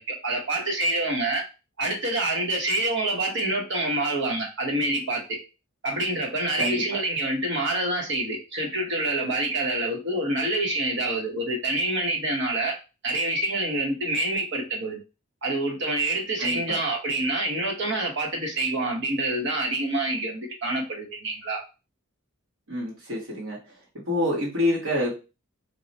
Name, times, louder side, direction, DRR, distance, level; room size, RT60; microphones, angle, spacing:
voice 1, 0.0-1.5 1.8-5.4 5.8-12.8 13.0-15.0 15.4-21.6, right 2 dB, 60° right, 1 dB, 1.2 m, -27 dB
voice 2, 6.6-7.0 16.4-16.8 22.7-23.6 24.1-25.1, left 1 dB, 80° right, -5 dB, 1.5 m, -27 dB
3.0 x 2.3 x 4.1 m, 0.31 s
head